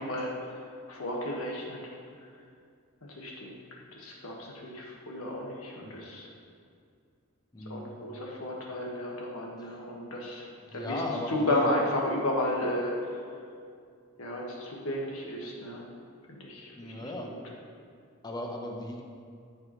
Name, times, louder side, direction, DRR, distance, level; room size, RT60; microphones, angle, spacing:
voice 1, 0.0-1.8 2.2-2.3 3.0-6.3 7.7-13.3 14.2-15.8 16.3-17.4, left 1 dB, 80° left, -2 dB, 1.6 m, -33 dB
voice 2, 7.5-7.9 10.6-11.7 16.8-17.3 18.2-19.0, left 1 dB, 20° left, 1 dB, 0.9 m, -36 dB
13.5 x 5.3 x 3.1 m, 2.3 s
head